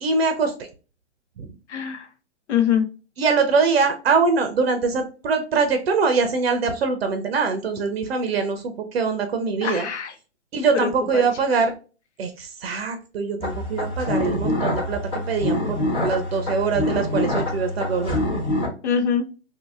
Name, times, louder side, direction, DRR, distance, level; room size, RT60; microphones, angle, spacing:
voice 1, 0.0-0.5 1.4-1.5 3.2-9.9 10.5-11.7 12.2-18.2, right 4 dB, 60° right, 7 dB, 0.7 m, -23 dB
voice 2, 1.7-2.1 2.5-2.9 9.6-10.1 10.7-11.3 18.8-19.3, left 7 dB, 70° left, 6 dB, 0.9 m, -23 dB
sound 1, 13.4-18.7, left 1 dB, 15° left, 1.2 m, -25 dB
2.8 x 2.7 x 2.5 m, 0.34 s
hypercardioid pair, 135°, 35 cm